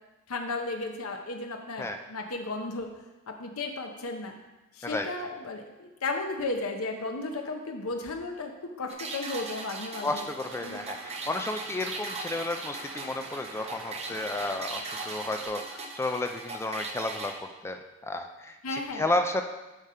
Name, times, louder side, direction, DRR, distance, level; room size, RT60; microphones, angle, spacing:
voice 1, 0.3-2.9 3.3-4.3 4.7-10.3 10.6-10.8 18.6-19.0, left 3 dB, 75° left, 3 dB, 0.8 m, -34 dB
sound 1, 8.9-17.3, right 3 dB, 30° right, 0.7 m, -39 dB
voice 2, 10.0-19.4, left 2 dB, 10° left, 6 dB, 0.3 m, -32 dB
sound 2, 10.5-15.5, right 3 dB, 85° right, 1.0 m, -46 dB
7.2 x 5.2 x 4.3 m, 1.1 s
head